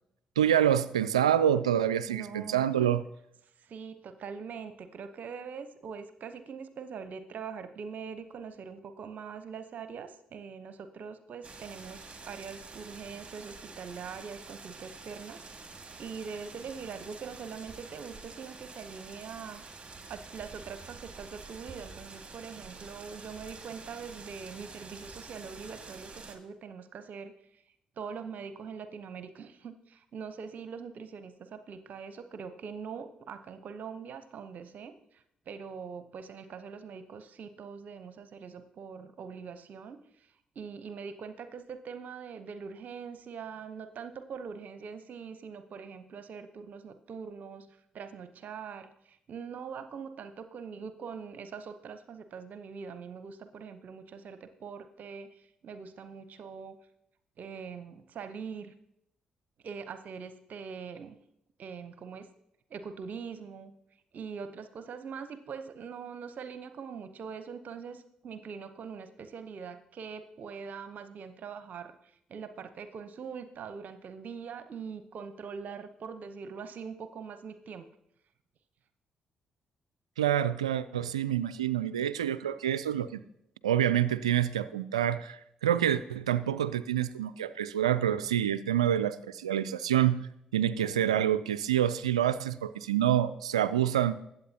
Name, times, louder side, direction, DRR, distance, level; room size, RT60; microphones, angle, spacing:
voice 1, 0.4-3.0 80.2-83.2 83.6-94.2, right 10 dB, 90° right, 15 dB, 0.4 m, -27 dB
voice 2, 2.1-2.9 3.4-15.4 16.0-19.6 20.1-27.6 28.0-47.7 47.9-56.8 57.4-58.7 59.6-61.2 61.6-62.3 62.7-63.7 64.1-77.9, right 6 dB, 60° right, 10 dB, 0.8 m, -43 dB
sound 1, 11.4-26.4, right 4 dB, 35° right, 1.7 m, -48 dB
21.0 x 8.2 x 2.8 m, 0.77 s
hypercardioid pair, 40°, 3 cm